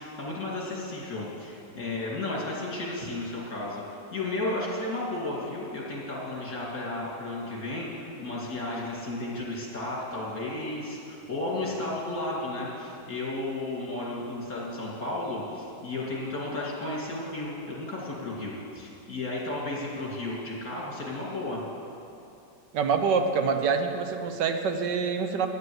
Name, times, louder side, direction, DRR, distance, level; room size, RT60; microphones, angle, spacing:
voice 1, 0.0-3.8 4.1-21.6, left 2 dB, 55° left, -4 dB, 2.9 m, -33 dB
voice 2, 22.7-25.5, right 5 dB, 80° right, 6 dB, 1.5 m, -26 dB
9.7 x 9.6 x 7.9 m, 2.8 s
omnidirectional pair, 1.9 m